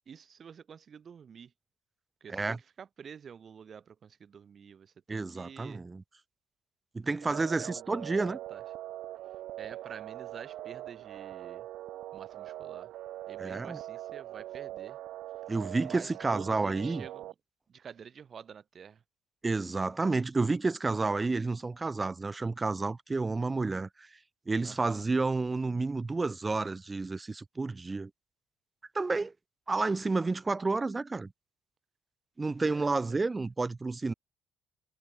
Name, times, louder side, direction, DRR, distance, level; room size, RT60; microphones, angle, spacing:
voice 1, 0.1-1.5 2.2-5.8 7.0-8.6 9.6-11.6 12.1-12.9 13.3-15.0 15.9-17.3 17.7-19.0 24.6-25.0 32.7-33.2, right 7 dB, 45° right, 0.9 m, -49 dB
voice 2, 5.1-6.0 6.9-8.4 13.4-13.8 15.5-17.1 19.4-24.1 24.5-28.1 28.9-29.3 29.7-31.3 32.4-34.1, right 3 dB, 20° right, 0.3 m, -30 dB
sound 1, 7.2-17.3, right 14 dB, 85° right, 0.8 m, -42 dB
cardioid pair, 105°, 0 cm